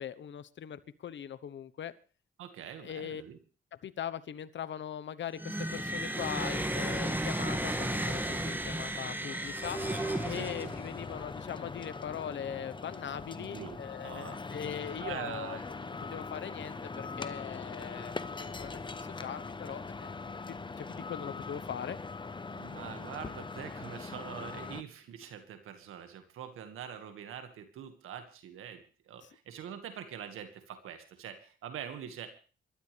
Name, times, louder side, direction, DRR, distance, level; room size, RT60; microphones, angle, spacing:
voice 1, 0.0-1.9 2.8-3.2 3.8-9.8 10.2-18.8 19.2-20.1 20.5-22.0, left 9 dB, 65° left, 14 dB, 1.1 m, -40 dB
voice 2, 2.4-3.4 10.3-10.7 13.4-13.8 14.0-14.4 15.0-15.6 22.5-32.3, right 8 dB, 85° right, 8 dB, 1.9 m, -44 dB
sound 1, 5.3-11.0, right 1 dB, 10° right, 2.0 m, -34 dB
sound 2, 9.6-24.8, left 4 dB, 25° left, 1.0 m, -41 dB
27.0 x 12.5 x 3.4 m, 0.37 s
cardioid pair, 80°, 21 cm